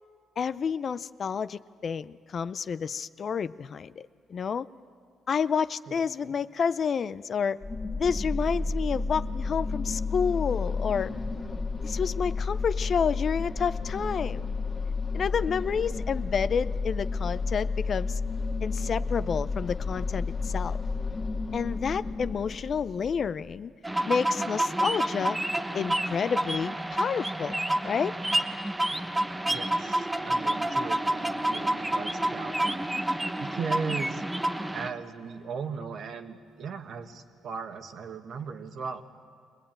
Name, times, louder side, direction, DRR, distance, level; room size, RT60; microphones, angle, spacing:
voice 1, 0.4-4.0 4.3-4.7 5.3-7.6 8.0-11.1 11.8-14.4 15.1-18.2 18.6-20.8 21.5-23.7 24.1-25.4 25.7-27.6 27.8-28.2, left 6 dB, 50° left, 15 dB, 0.5 m, -29 dB
voice 2, 5.9-6.3 29.5-32.8 33.4-34.2 34.7-39.0, right 5 dB, 65° right, 7 dB, 1.5 m, -37 dB
sound 1, 7.6-23.5, left 4 dB, 25° left, 1.8 m, -31 dB
sound 2, 23.8-34.9, right 1 dB, 10° right, 1.0 m, -29 dB
22.5 x 19.5 x 8.9 m, 2.1 s
cardioid pair, 90°, 0 cm